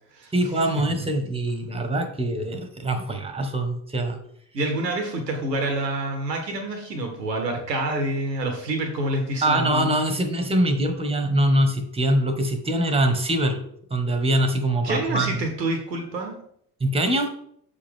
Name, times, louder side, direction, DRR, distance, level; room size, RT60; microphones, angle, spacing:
voice 1, 0.3-4.2 9.4-13.6 13.9-15.3 16.8-17.3, right 1 dB, 10° right, 7 dB, 1.2 m, -23 dB
voice 2, 4.5-10.0 14.8-16.4, right 1 dB, 85° right, 4 dB, 0.9 m, -27 dB
6.7 x 5.0 x 3.6 m, 0.68 s
figure-of-eight pair, 55°, 49 cm